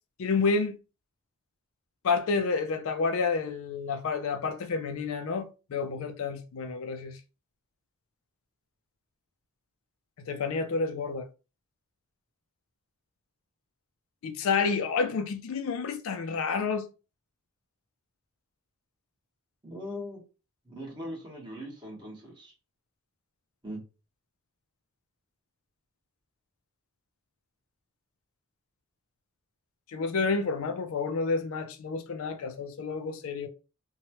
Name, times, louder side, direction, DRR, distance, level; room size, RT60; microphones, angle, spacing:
voice 1, 0.2-0.8 2.0-7.2 10.2-11.3 14.2-16.9 29.9-33.5, left 4 dB, 65° left, 0.4 m, -29 dB
voice 2, 19.6-20.2 20.7-22.5 23.6-23.8, equal, 20° right, 1.1 m, -40 dB
2.8 x 2.2 x 2.9 m
head